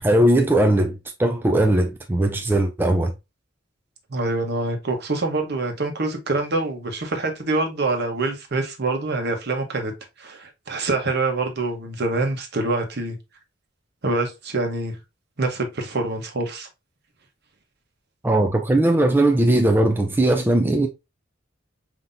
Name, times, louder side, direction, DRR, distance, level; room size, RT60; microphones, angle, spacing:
voice 1, 0.0-3.1 18.2-20.9, right 1 dB, 10° right, 0.4 m, -19 dB
voice 2, 4.1-9.9 10.2-13.2 14.0-15.0 15.4-16.7, right 2 dB, 60° right, 1.1 m, -25 dB
5.5 x 2.9 x 2.5 m
head